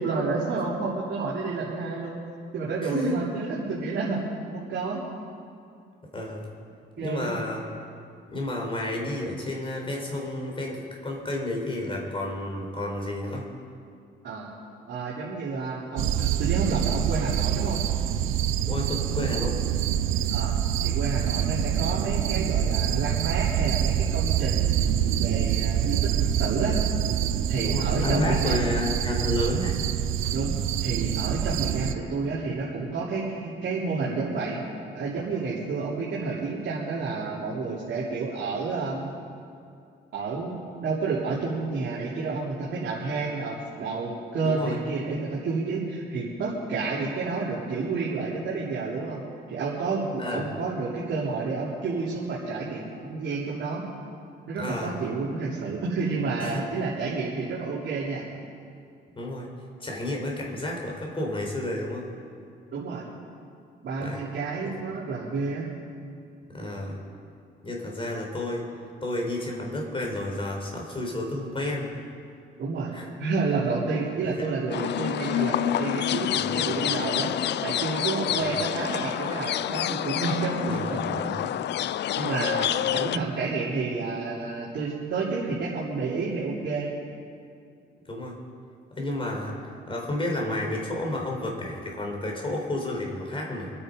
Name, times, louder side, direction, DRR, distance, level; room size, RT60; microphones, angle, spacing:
voice 1, 0.0-2.2 2.5-4.2 4.5-5.0 7.0-7.3 14.2-14.5 14.9-17.8 20.3-20.5 20.8-26.8 27.5-28.6 30.3-34.6 34.9-39.1 40.1-49.2 49.5-53.8 54.5-58.2 62.7-63.1 63.8-65.7 72.6-72.9 73.2-81.3 82.1-86.9, right 4 dB, 65° right, -7 dB, 3.3 m, -30 dB
voice 2, 2.8-3.2 6.1-6.5 7.0-7.6 8.3-13.5 18.7-19.7 27.6-29.8 31.8-31.9 44.4-44.8 47.0-47.1 50.2-50.5 54.6-55.0 56.4-56.6 59.2-59.5 59.8-62.1 64.0-64.2 66.5-67.0 67.6-68.6 69.0-72.0 72.9-73.1 76.3-76.7 78.3-78.5 80.7-81.5 88.1-88.4 89.0-93.7, left 1 dB, 25° left, 0 dB, 4.4 m, -31 dB
sound 1, 16.0-31.9, right 10 dB, 85° right, 0.8 m, -26 dB
sound 2, 74.7-83.2, left 11 dB, 60° left, 0.5 m, -28 dB
27.0 x 9.6 x 5.3 m, 2.5 s
cardioid pair, 90°, 20 cm